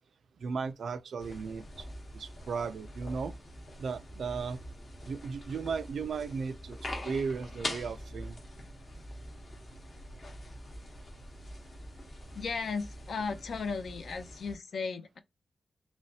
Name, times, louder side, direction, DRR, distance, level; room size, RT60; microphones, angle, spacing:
voice 1, 0.4-1.9 2.1-3.3 3.8-4.6 5.1-6.8 7.0-8.4, right 5 dB, 75° right, 0.3 m, -35 dB
sound 1, 1.2-14.6, left 1 dB, 45° left, 0.9 m, -44 dB
voice 2, 12.3-15.2, left 5 dB, 60° left, 0.5 m, -35 dB
3.2 x 2.9 x 2.7 m
wide cardioid pair, 155°, 0 cm